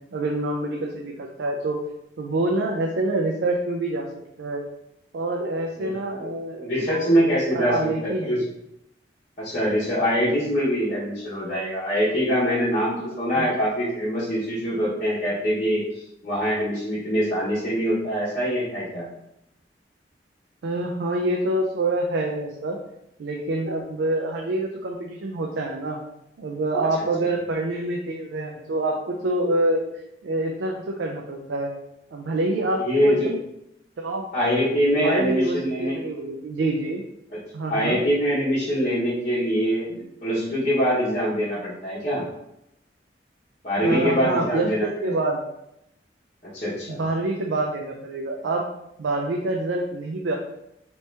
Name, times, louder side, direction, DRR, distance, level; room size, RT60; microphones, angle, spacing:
voice 1, 0.1-1.8 2.2-4.1 4.4-4.6 5.1-7.1 7.5-8.4 13.4-13.5 20.6-22.8 23.2-26.0 26.4-31.7 32.1-33.4 34.0-34.3 35.0-37.0 37.5-38.0 43.8-45.4 46.9-48.7 49.0-50.3, right 2 dB, 80° right, 1 dB, 0.4 m, -26 dB
voice 2, 5.8-6.3 6.6-8.4 9.4-19.1 32.8-33.3 34.3-36.0 37.3-37.4 37.7-42.2 43.6-45.1 46.4-47.0, equal, 45° left, -11 dB, 0.9 m, -24 dB
3.0 x 2.8 x 3.2 m, 0.82 s
head